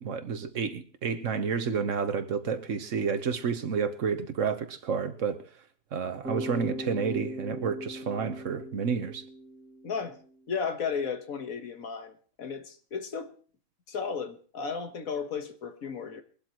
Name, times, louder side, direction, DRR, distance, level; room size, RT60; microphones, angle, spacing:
voice 1, 0.0-5.4 5.9-9.2, right 6 dB, 60° right, 1.4 m, -30 dB
Bass guitar, 6.2-10.2, equal, ahead, 2.2 m, -39 dB
voice 2, 9.8-10.2 10.5-13.3 13.9-16.2, left 6 dB, 75° left, 1.7 m, -34 dB
22.5 x 12.0 x 3.0 m
omnidirectional pair, 1.5 m